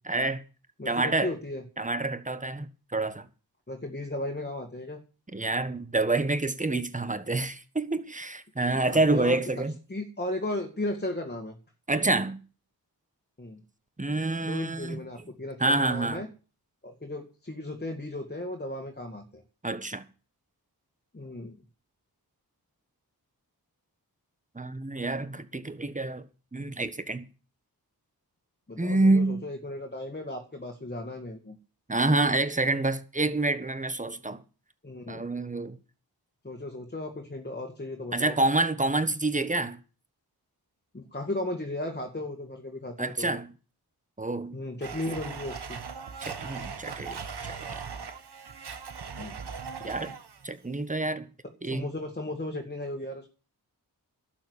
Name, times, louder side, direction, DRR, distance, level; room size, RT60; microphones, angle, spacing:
voice 1, 0.0-0.4 0.8-1.3 1.8-3.2 5.3-9.8 11.9-12.4 14.0-15.0 15.6-16.2 19.6-20.0 24.5-26.2 26.5-27.2 28.8-29.4 31.9-34.4 35.1-35.8 38.1-39.8 43.0-43.5 44.2-44.6 46.2-47.5 49.8-50.1 50.4-51.3 51.6-51.9, right 2 dB, 20° right, 1.4 m, -27 dB
voice 2, 0.8-1.6 3.7-5.0 8.8-9.4 9.9-11.6 13.4-13.6 14.4-16.3 16.8-19.4 21.1-21.6 28.7-31.6 34.8-35.2 36.4-38.4 40.9-43.4 44.5-45.8 49.2-49.4 51.4-53.3, left 1 dB, 25° left, 2.3 m, -35 dB
Domestic sounds home sounds, 44.8-50.5, right 5 dB, 80° right, 1.5 m, -39 dB
12.0 x 7.4 x 9.8 m
wide cardioid pair, 80°, 39 cm